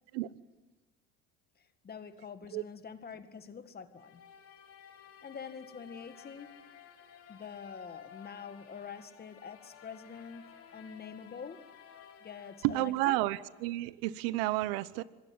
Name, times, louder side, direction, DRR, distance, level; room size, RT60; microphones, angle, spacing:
voice 1, 1.6-4.2 5.2-6.8 7.3-11.7 12.2-13.2, left 6 dB, 35° left, 2.0 m, -46 dB
sound 1, 3.9-13.9, left 8 dB, 50° left, 3.3 m, -55 dB
voice 2, 12.6-15.0, right 17 dB, 90° right, 1.0 m, -31 dB
25.5 x 19.5 x 9.6 m
supercardioid pair, 95°, 29 cm